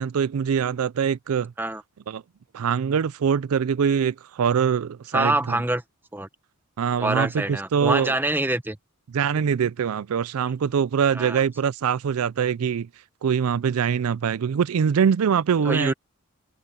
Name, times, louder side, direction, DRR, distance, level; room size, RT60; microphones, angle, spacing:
voice 1, 0.0-1.5 2.1-2.2 2.5-5.6 6.8-8.1 9.1-12.9 13.2-15.9, right 7 dB, 80° right, 0.4 m, -23 dB
voice 2, 5.1-5.8 6.1-6.3 7.0-8.8 11.1-11.4 15.6-15.9, right 1 dB, 10° right, 0.9 m, -25 dB
head